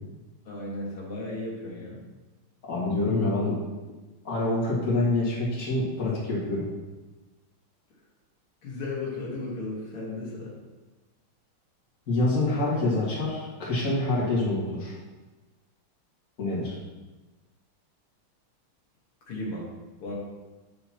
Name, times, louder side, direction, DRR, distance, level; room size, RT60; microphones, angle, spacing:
voice 1, 0.5-2.0 8.6-10.5 19.3-19.7 20.0-20.2, left 2 dB, 90° left, -5 dB, 2.6 m, -35 dB
voice 2, 2.7-3.6 4.2-6.7 12.1-15.0 16.4-16.8, left 2 dB, 40° left, -6 dB, 2.3 m, -26 dB
8.8 x 6.6 x 2.9 m, 1.2 s
omnidirectional pair, 2.3 m